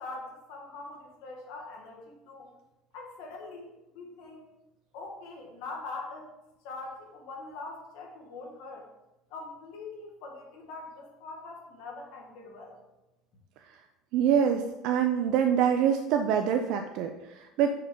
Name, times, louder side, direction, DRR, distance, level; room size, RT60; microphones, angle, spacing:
voice 1, 0.0-2.5 2.9-4.5 4.9-6.3 6.6-8.9 9.3-12.8, left 3 dB, 70° left, 0 dB, 1.7 m, -43 dB
voice 2, 14.1-17.7, right 8 dB, 55° right, 5 dB, 0.4 m, -25 dB
6.4 x 5.7 x 3.7 m, 0.98 s
cardioid pair, 170°, 0 cm